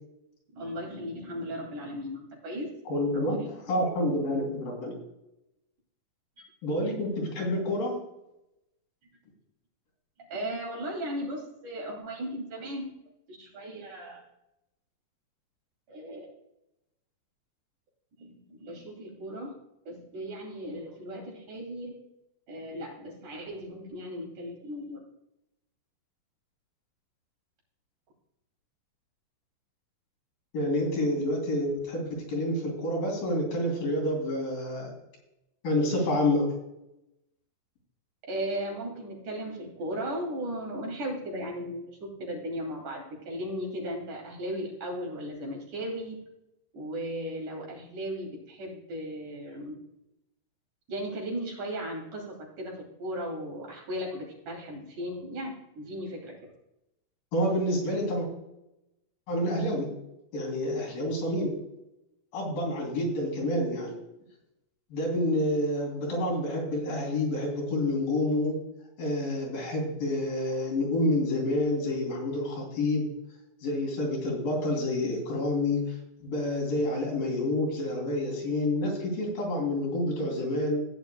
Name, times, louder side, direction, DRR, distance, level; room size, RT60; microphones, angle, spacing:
voice 1, 0.5-2.7 3.1-3.5 10.2-12.8 13.3-14.2 15.9-16.3 18.2-19.5 19.9-22.0 22.5-25.0 38.2-46.2 46.7-49.7 50.9-56.4, equal, 60° right, -1 dB, 4.1 m, -36 dB
voice 2, 2.9-3.4 3.7-5.0 6.6-8.0 30.5-34.9 35.6-36.5 57.3-58.3 59.3-59.9 60.3-61.5 62.3-64.0 64.9-68.6 69.0-73.1 73.6-75.8 76.2-80.8, left 1 dB, 75° left, -1 dB, 4.7 m, -28 dB
16.0 x 9.6 x 2.2 m, 0.88 s
omnidirectional pair, 4.0 m